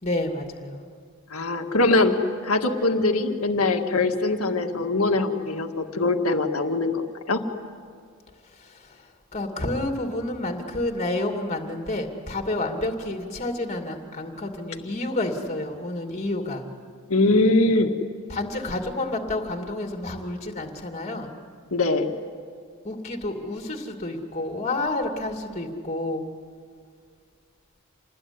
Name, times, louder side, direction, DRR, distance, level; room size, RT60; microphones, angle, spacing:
voice 1, 0.0-0.8 8.6-9.0 9.3-16.7 18.3-21.4 22.8-26.3, left 2 dB, 30° left, 3 dB, 2.6 m, -29 dB
voice 2, 1.3-7.0 7.3-7.4 17.1-17.9 21.7-22.1, left 2 dB, 70° left, 4 dB, 1.9 m, -22 dB
27.5 x 20.5 x 9.9 m, 2.1 s
head